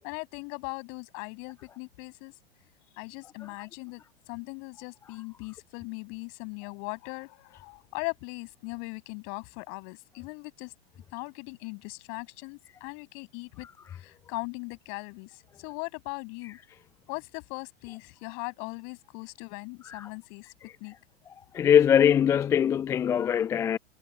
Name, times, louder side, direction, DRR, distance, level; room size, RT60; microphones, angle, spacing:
voice 1, 0.0-2.3 2.9-10.7 11.1-13.7 13.9-16.6 17.1-20.5 20.8-20.9, left 40 dB or more, 35° left, 7.0 m, -39 dB
voice 2, 21.5-23.8, left 9 dB, 10° left, 0.4 m, -22 dB
figure-of-eight pair, 105°, 31 cm